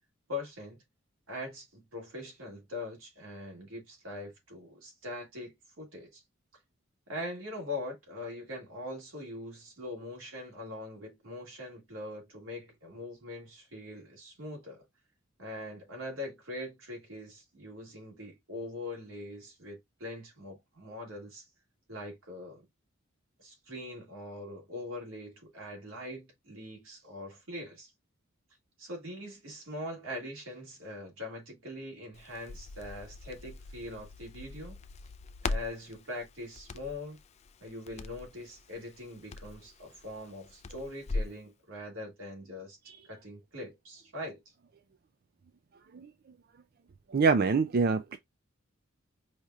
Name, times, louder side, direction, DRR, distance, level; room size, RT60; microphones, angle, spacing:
voice 1, 0.3-0.8 1.3-6.2 7.1-14.8 15.4-21.5 21.9-22.6 23.4-27.9 28.8-34.8 35.4-37.2 37.6-42.8 43.0-44.4, left 1 dB, 85° right, 2.1 m, -42 dB
Crackle, 32.1-41.4, left 3 dB, 35° left, 0.4 m, -41 dB
voice 2, 47.1-48.2, right 4 dB, 50° right, 0.4 m, -25 dB
4.9 x 2.9 x 2.3 m
head